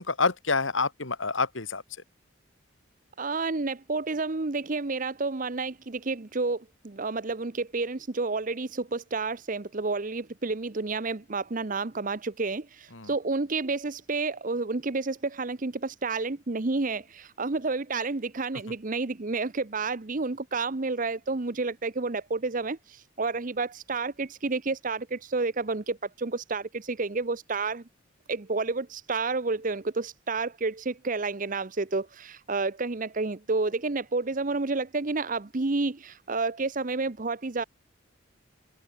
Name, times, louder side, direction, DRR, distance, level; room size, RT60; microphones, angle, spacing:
voice 1, 0.0-1.8 12.9-13.1, left 4 dB, 80° left, 2.8 m, -27 dB
voice 2, 3.2-22.8 23.2-27.8 28.3-37.6, right 3 dB, 45° right, 0.9 m, -30 dB
open air
head